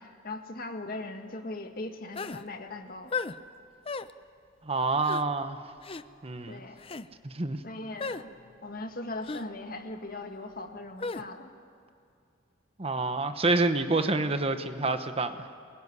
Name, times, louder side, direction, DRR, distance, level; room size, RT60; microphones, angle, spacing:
voice 1, 0.0-3.1 6.5-6.8 7.6-8.3 8.6-11.5, left 2 dB, 45° left, 5 dB, 1.8 m, -39 dB
sound 1, 2.2-2.4 3.1-3.4 3.9-4.1 5.0-5.2 5.8-6.0 6.8-7.1 8.0-8.2 9.2-9.5 11.0-11.2, left 4 dB, 30° left, 0.6 m, -34 dB
voice 2, 4.6-5.6 6.2-6.6 7.2-7.6 12.8-15.5, right 3 dB, 30° right, 9 dB, 0.9 m, -28 dB
23.0 x 21.5 x 9.7 m, 2.4 s
head